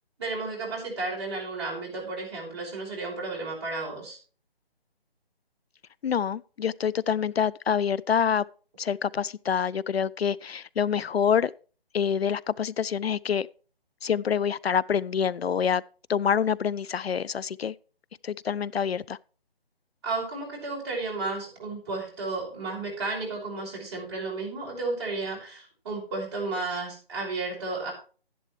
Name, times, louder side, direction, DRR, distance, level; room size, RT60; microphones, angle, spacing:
voice 1, 0.2-4.2 20.0-27.9, right 3 dB, 25° right, 5.6 m, -33 dB
voice 2, 6.0-8.4 8.8-11.5 11.9-13.5 14.0-15.8 16.1-17.7 18.2-19.2, left 7 dB, 80° left, 0.5 m, -26 dB
12.5 x 11.0 x 3.2 m
figure-of-eight pair, 165°, 31 cm